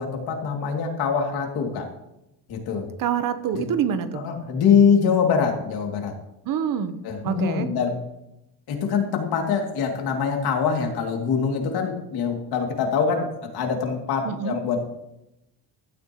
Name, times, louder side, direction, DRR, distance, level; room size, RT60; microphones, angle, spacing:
voice 1, 0.0-1.9 2.5-2.9 3.6-3.7 4.1-6.1 7.0-8.0 8.7-14.8, left 6 dB, 60° left, 2 dB, 2.7 m, -24 dB
voice 2, 3.0-4.3 6.4-7.0 7.2-7.7 14.2-14.6, right 8 dB, 50° right, 10 dB, 1.1 m, -26 dB
15.5 x 12.0 x 3.1 m, 0.88 s
cardioid pair, 145°, 41 cm